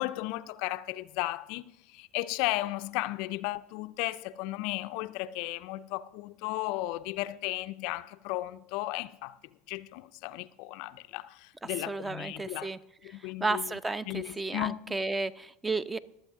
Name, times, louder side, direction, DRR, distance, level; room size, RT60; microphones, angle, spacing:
voice 1, 0.0-9.4 9.7-12.7 13.0-13.7 14.1-15.0, left 18 dB, 60° left, 0.4 m, -35 dB
voice 2, 11.6-12.8 13.4-16.0, right 3 dB, 15° right, 0.6 m, -33 dB
21.5 x 7.7 x 3.6 m
hypercardioid pair, 80°, 0 cm